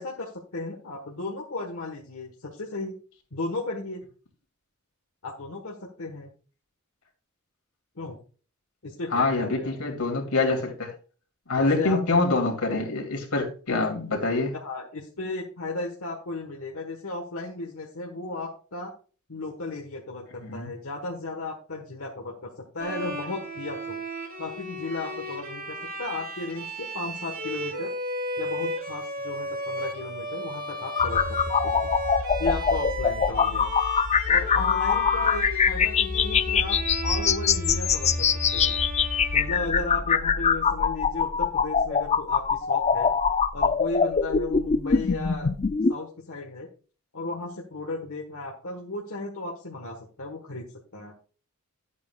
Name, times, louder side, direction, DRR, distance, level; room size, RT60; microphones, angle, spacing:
voice 1, 0.0-2.9 3.3-4.0 5.2-6.3 7.9-8.2 8.8-9.7 11.6-12.0 13.8-13.9 14.5-18.9 19.3-24.0 24.4-27.9 28.4-31.2 31.6-31.9 32.4-33.7 34.3-38.3 38.5-38.8 39.3-43.1 43.5-45.5 45.9-46.7 47.1-51.2, left 2 dB, 70° left, 0 dB, 1.5 m, -35 dB
voice 2, 9.1-10.9 11.5-14.5 20.4-20.7, left 3 dB, 90° left, 0 dB, 2.8 m, -25 dB
Bowed string instrument, 22.8-40.2, right 1 dB, 40° right, 1.8 m, -35 dB
sound 1, 31.0-45.9, left 6 dB, 30° left, 0.4 m, -23 dB
11.5 x 8.2 x 2.4 m, 0.38 s
head